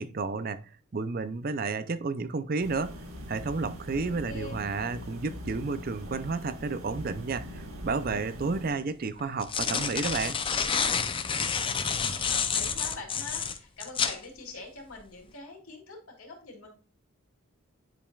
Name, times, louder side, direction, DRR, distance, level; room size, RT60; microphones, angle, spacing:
voice 1, 0.0-3.0 3.3-10.4, right 4 dB, 45° right, 0.5 m, -31 dB
sound 1, 2.6-8.7, equal, 75° right, 1.8 m, -41 dB
voice 2, 3.9-4.6 11.4-16.7, left 3 dB, 80° left, 2.8 m, -44 dB
sound 2, 8.1-8.2 9.2-14.2, left 6 dB, 25° left, 0.5 m, -29 dB
10.0 x 5.2 x 2.3 m
head